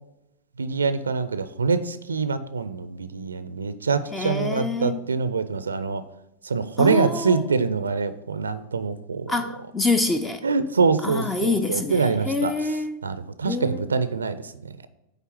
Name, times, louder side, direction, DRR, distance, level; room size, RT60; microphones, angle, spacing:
voice 1, 0.6-6.0 6.4-9.3 10.4-12.5 13.0-14.7, right 4 dB, 75° right, 0.4 m, -25 dB
voice 2, 4.1-5.0 6.8-7.5 9.3-10.4 11.0-13.1 13.4-13.9, left 3 dB, 15° left, 0.4 m, -26 dB
9.0 x 3.3 x 6.0 m
figure-of-eight pair, 90°, 0 cm